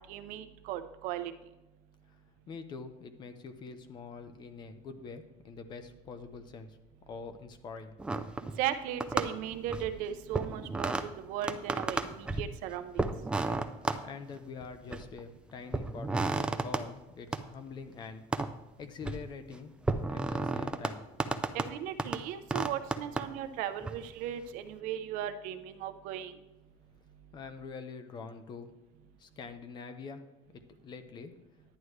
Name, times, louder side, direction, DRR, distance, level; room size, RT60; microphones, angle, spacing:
voice 1, 0.0-1.3 8.6-13.1 21.5-26.4, right 10 dB, 70° right, 10 dB, 0.7 m, -37 dB
voice 2, 2.5-6.8 7.1-8.0 14.0-18.2 18.8-19.8 20.1-21.0 27.3-28.8 29.2-30.2 30.5-31.3, left 5 dB, 30° left, 9 dB, 0.7 m, -45 dB
sound 1, 8.0-8.7 9.0-10.0 10.3-11.1 11.4-12.5 13.0-14.0 14.6-15.2 15.7-16.8 17.3-17.4 18.3-18.5 18.8-19.3 19.8-20.9 21.2-21.7 22.0-22.2 22.5-23.3 23.8-23.9, right 3 dB, 5° right, 0.3 m, -32 dB
11.0 x 9.6 x 3.2 m, 1.0 s
cardioid pair, 180°, 14 cm